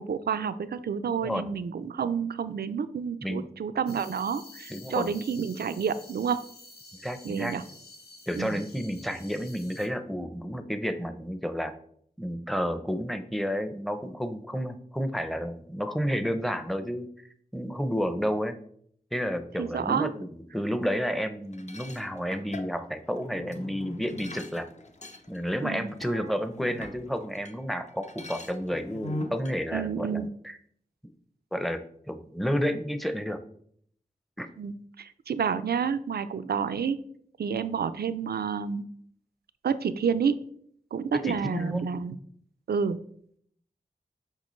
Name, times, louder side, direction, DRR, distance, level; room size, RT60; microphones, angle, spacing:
voice 1, 0.0-6.4 7.2-7.6 8.4-8.6 19.6-20.1 25.6-25.9 29.7-30.3 34.6-37.0 37.4-38.8 39.6-40.5 40.9-42.2 42.7-43.0, right 6 dB, 80° right, 12 dB, 0.4 m, -29 dB
sound 1, 3.9-9.9, left 2 dB, 80° left, 1.0 m, -49 dB
voice 2, 4.7-5.1 7.0-7.6 8.3-11.7 12.2-17.1 17.5-18.6 19.1-20.3 20.5-24.7 25.3-30.6 31.5-33.4 34.4-34.5 41.1-42.0, equal, ahead, 9 dB, 0.6 m, -31 dB
sound 2, 21.5-27.6 27.9-29.6, left 1 dB, 45° left, 0.7 m, -41 dB
6.5 x 5.0 x 3.1 m, 0.64 s
wide cardioid pair, 55°, 16 cm